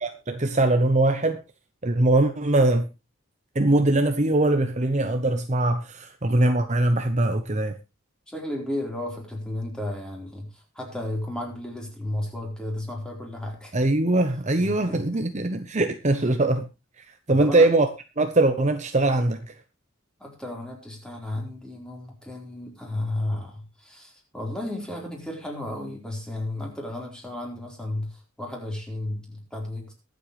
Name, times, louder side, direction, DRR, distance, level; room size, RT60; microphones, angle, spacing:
voice 1, 0.0-1.4 1.8-2.9 3.5-7.7 13.7-16.7 17.3-17.9 18.2-19.5, right 2 dB, 35° right, 0.9 m, -22 dB
voice 2, 8.3-13.7 14.6-15.2 17.3-17.7 20.2-29.9, left 1 dB, 5° left, 4.2 m, -33 dB
22.5 x 7.9 x 3.2 m
head